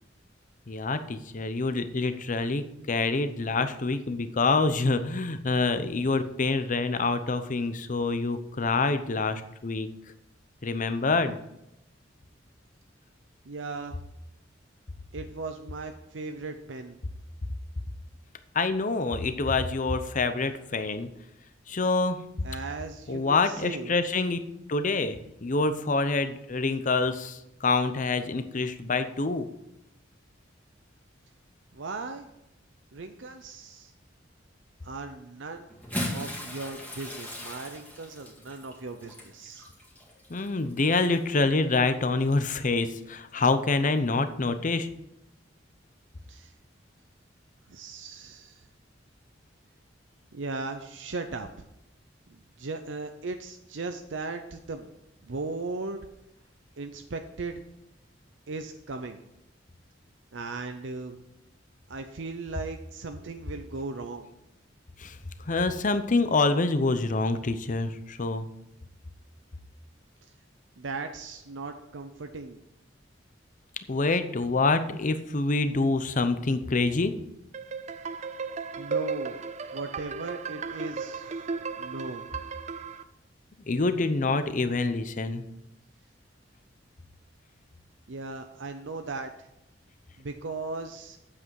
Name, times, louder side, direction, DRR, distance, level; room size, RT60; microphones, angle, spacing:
voice 1, 0.7-9.9 10.6-11.4 18.5-21.1 21.7-22.3 23.1-24.4 24.7-29.5 40.3-44.9 65.0-65.2 65.4-68.5 73.9-77.1 83.7-85.4, left 3 dB, 45° left, 11 dB, 0.7 m, -26 dB
voice 2, 13.5-14.0 15.1-17.0 22.4-24.0 31.7-32.3 32.9-33.9 34.8-35.7 36.1-39.7 46.3-46.5 47.7-48.6 50.3-51.7 52.3-54.9 55.2-56.0 56.8-57.6 58.5-59.2 60.3-61.2 61.9-64.3 70.8-72.6 78.8-79.4 79.7-81.4 81.8-82.3 88.1-89.3 90.2-91.2, right 3 dB, 85° right, 6 dB, 0.7 m, -37 dB
Bathtub (filling or washing) / Splash splatter, 35.7-41.4 42.3-42.5 43.9-44.0, left 1 dB, 10° left, 1.9 m, -38 dB
sound 1, 77.5-83.0, right 5 dB, 40° right, 0.5 m, -35 dB
8.5 x 7.7 x 4.7 m, 0.85 s
head